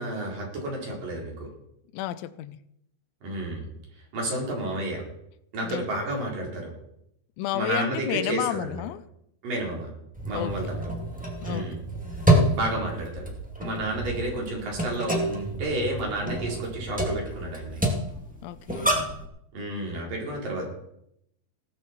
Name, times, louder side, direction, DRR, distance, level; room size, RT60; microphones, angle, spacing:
voice 1, 0.0-1.5 3.2-3.7 4.1-5.0 5.5-6.7 7.5-8.8 9.4-9.9 10.3-10.9 11.4-11.8 12.5-13.3 13.6-17.8 19.5-20.7, right 1 dB, 50° right, -1 dB, 5.4 m, -31 dB
voice 2, 1.9-2.6 5.6-5.9 7.4-9.0 10.3-10.6 11.4-11.7 18.4-18.9, left 14 dB, 90° left, 15 dB, 3.1 m, -31 dB
sound 1, 10.1-19.3, right 1 dB, 10° right, 0.3 m, -28 dB
17.5 x 13.5 x 4.3 m, 0.76 s
omnidirectional pair, 5.3 m